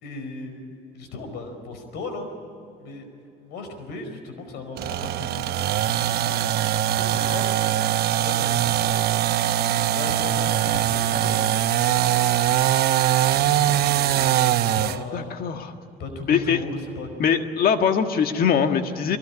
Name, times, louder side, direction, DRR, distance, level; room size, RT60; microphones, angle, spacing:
voice 1, 0.0-2.3 2.8-3.0 3.4-6.4 6.8-7.6 8.2-9.1 9.9-12.3 13.3-15.4 16.0-17.1, left 3 dB, 85° left, 6 dB, 5.0 m, -37 dB
sound 1, 4.8-15.0, right 12 dB, 70° right, 1.0 m, -22 dB
voice 2, 15.1-15.7 16.3-16.6 17.2-19.2, left 7 dB, 60° left, 6 dB, 1.7 m, -22 dB
23.0 x 19.0 x 9.8 m, 2.7 s
cardioid pair, 110°, 17 cm